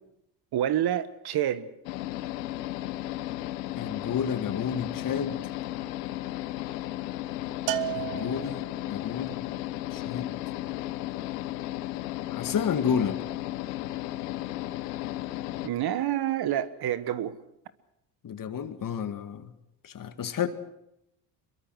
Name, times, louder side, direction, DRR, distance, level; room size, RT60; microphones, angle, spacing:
voice 1, 0.5-1.7 15.6-17.4, right 11 dB, 50° right, 1.4 m, -28 dB
sound 1, 1.9-15.7, left 15 dB, 80° left, 1.1 m, -34 dB
voice 2, 3.8-5.4 7.9-9.5 9.9-10.3 12.3-13.2 18.2-19.5 19.8-20.5, left 7 dB, 45° left, 2.0 m, -30 dB
Bell, 7.7-9.0, right 14 dB, 85° right, 1.2 m, -33 dB
24.0 x 22.5 x 6.3 m
hypercardioid pair, 70°, 47 cm